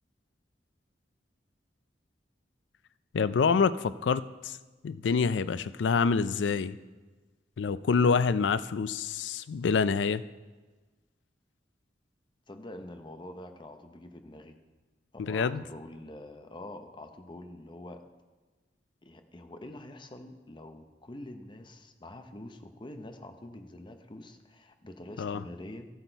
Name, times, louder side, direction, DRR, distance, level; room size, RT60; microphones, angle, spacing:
voice 1, 3.1-4.6 4.8-6.8 7.6-10.2 15.2-15.6 25.2-25.4, left 5 dB, 85° left, 16 dB, 0.4 m, -27 dB
voice 2, 12.5-14.6 15.3-18.0 19.0-25.9, left 1 dB, 25° left, 7 dB, 0.8 m, -45 dB
13.0 x 8.1 x 4.5 m, 1.3 s
head